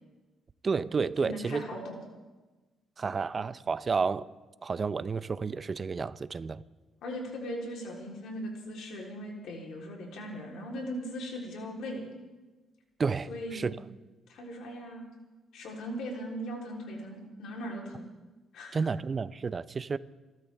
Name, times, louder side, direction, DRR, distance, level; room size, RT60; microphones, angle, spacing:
voice 1, 0.6-1.6 3.0-4.3 4.6-6.6 13.0-13.7 18.7-20.0, right 5 dB, 35° right, 0.6 m, -31 dB
voice 2, 1.2-2.0 7.0-12.1 13.3-13.7 14.3-15.1 15.5-18.1 18.5-18.9, equal, 75° left, 3.6 m, -39 dB
29.0 x 12.5 x 3.5 m
cardioid pair, 90°, 0 cm